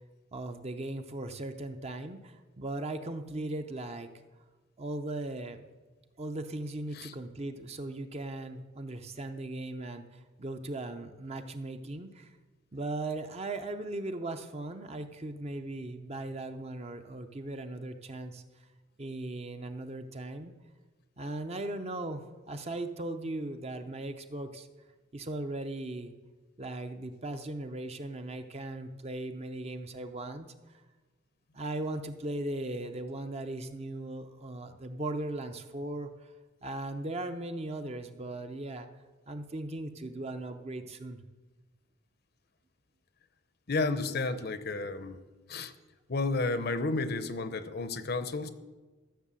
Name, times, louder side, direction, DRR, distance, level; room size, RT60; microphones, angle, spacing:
voice 1, 0.3-4.1 4.8-5.6 6.2-12.3 12.7-18.4 19.0-20.5 21.2-24.7 25.1-26.1 26.6-30.5 31.5-36.1 36.6-38.9 39.3-41.2, right 2 dB, 30° right, 7 dB, 0.7 m, -38 dB
voice 2, 43.7-45.2 45.5-45.7 46.1-48.5, left 3 dB, 50° left, 11 dB, 0.7 m, -32 dB
14.0 x 6.5 x 7.6 m, 1.3 s
head